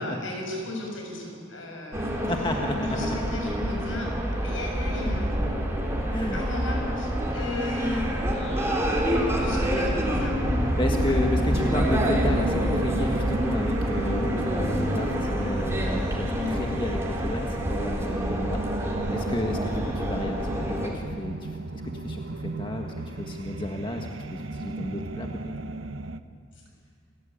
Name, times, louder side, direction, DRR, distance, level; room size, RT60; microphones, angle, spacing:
voice 1, 0.0-2.3 2.8-4.1 4.4-5.3 6.3-10.5 11.1-11.2 16.3-16.5, left 2 dB, 75° left, 1 dB, 6.9 m, -35 dB
sound 1, 1.9-20.9, equal, 15° right, 3.7 m, -27 dB
voice 2, 2.3-3.2 6.1-6.4 10.8-21.6 21.9-25.5, left 1 dB, 25° left, 2 dB, 1.6 m, -32 dB
sound 2, 9.9-26.2, right 2 dB, 80° right, 1.0 m, -35 dB
29.0 x 18.0 x 8.8 m, 2.2 s
head